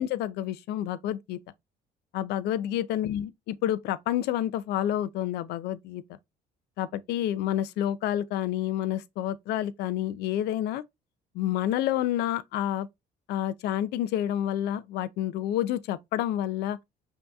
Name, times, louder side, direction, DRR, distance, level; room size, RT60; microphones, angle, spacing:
voice 1, 0.0-1.4 2.1-6.0 6.8-10.8 11.3-12.9 13.3-16.8, left 12 dB, 75° left, 0.4 m, -29 dB
5.3 x 2.8 x 2.3 m
cardioid pair, 110°, 17 cm